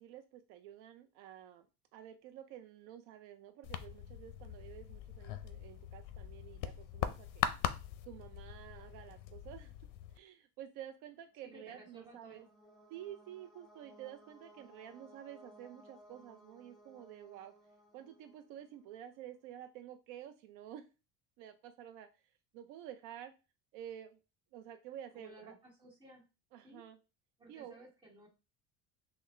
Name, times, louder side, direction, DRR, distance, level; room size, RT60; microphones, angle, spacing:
voice 1, 0.0-1.7 1.9-7.5 8.0-9.7 10.1-12.4 12.9-17.5 17.9-20.9 21.4-22.2 22.5-23.3 23.7-24.2 24.5-25.5 26.5-27.0 27.5-27.9, right 11 dB, 70° right, 7 dB, 0.5 m, -50 dB
sound 1, 3.6-10.2, left 10 dB, 70° left, 0.5 m, -41 dB
sound 2, 11.5-19.1, equal, ahead, 0.7 m, -61 dB
voice 2, 11.5-12.5 25.1-26.2 26.6-26.9 27.4-28.3, right 1 dB, 15° right, -2 dB, 1.3 m, -57 dB
5.7 x 2.1 x 3.1 m, 0.30 s
cardioid pair, 160°, 33 cm